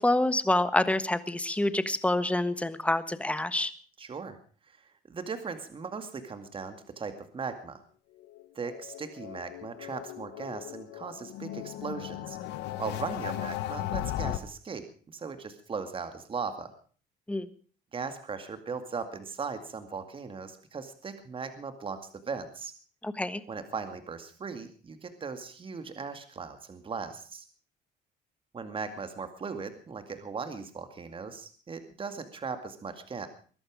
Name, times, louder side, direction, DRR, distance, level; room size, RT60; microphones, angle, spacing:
voice 1, 0.0-3.7 17.3-17.5 23.0-23.4, left 1 dB, 5° left, 13 dB, 1.3 m, -27 dB
voice 2, 4.0-4.4 5.1-7.8 8.6-12.4 12.8-16.7 17.9-22.7 23.5-27.4 28.5-33.3, right 5 dB, 30° right, 9 dB, 2.2 m, -38 dB
sound 1, 8.2-14.4, left 13 dB, 85° left, 1.4 m, -37 dB
21.5 x 11.5 x 5.0 m, 0.41 s
cardioid pair, 110°, 17 cm